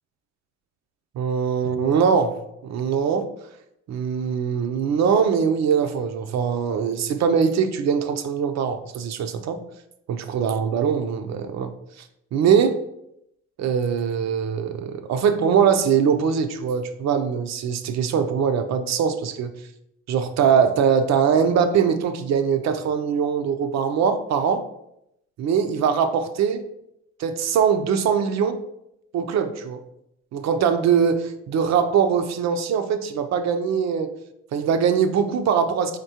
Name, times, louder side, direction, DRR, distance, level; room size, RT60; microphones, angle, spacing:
voice 1, 1.1-2.4 2.6-3.3 3.9-9.6 10.1-12.8 13.6-19.5 20.1-24.6 25.4-26.6 27.2-28.6 29.1-29.8 30.3-34.1 34.5-36.0, right 7 dB, 65° right, 9 dB, 0.5 m, -22 dB
3.6 x 3.5 x 2.8 m, 0.80 s
cardioid pair, 90°, 30 cm